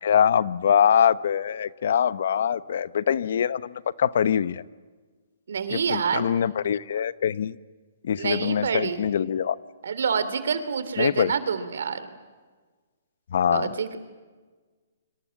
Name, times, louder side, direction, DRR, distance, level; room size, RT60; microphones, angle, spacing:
voice 1, 0.0-4.6 5.7-7.6 8.0-9.6 11.0-11.3 13.3-13.7, left 8 dB, 65° left, 17 dB, 0.9 m, -23 dB
voice 2, 5.5-6.2 8.2-9.1 9.8-12.1 13.5-14.0, right 6 dB, 75° right, 12 dB, 3.2 m, -27 dB
29.0 x 25.5 x 7.3 m, 1.4 s
hypercardioid pair, 160°, 0 cm